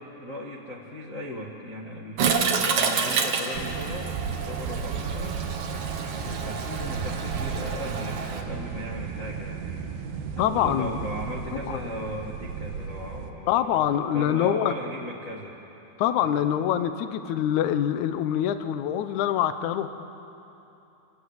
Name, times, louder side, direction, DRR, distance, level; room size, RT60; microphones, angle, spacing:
voice 1, 0.0-10.0 10.3-15.6 16.2-16.4, left 1 dB, 55° left, -2 dB, 0.8 m, -38 dB
Toilet flush, 2.2-8.4, right 5 dB, 60° right, 2.5 m, -29 dB
sound 1, 3.5-13.3, right 6 dB, 75° right, 2.8 m, -34 dB
voice 2, 10.4-10.9 11.7-11.8 13.5-14.7 16.0-19.9, left 10 dB, 70° left, 10 dB, 1.9 m, -25 dB
27.0 x 19.0 x 8.0 m, 2.9 s
omnidirectional pair, 4.3 m